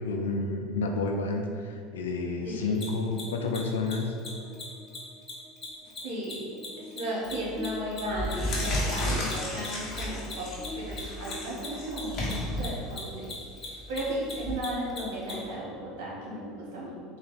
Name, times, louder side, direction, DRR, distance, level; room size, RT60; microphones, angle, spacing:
voice 1, 0.0-4.2, left 3 dB, 90° left, 3 dB, 0.4 m, -30 dB
voice 2, 2.4-2.8 6.0-6.4 6.8-10.5 10.7-13.3 13.6-16.9, right 1 dB, 70° right, -5 dB, 1.5 m, -35 dB
Mechanisms, 2.7-2.8 3.1-3.2 3.5-3.6 3.8-4.3 4.5-4.6 4.9-5.0 5.3-8.0 8.2-15.3, left 5 dB, 30° left, 1.4 m, -40 dB
Buzz, 3.3-12.7, left 1 dB, 10° left, 0.6 m, -47 dB
sound 1, 7.3-7.6 8.0-14.5, left 1 dB, 50° left, 1.4 m, -33 dB
3.9 x 2.8 x 4.1 m, 2.4 s
hypercardioid pair, 85°, 0 cm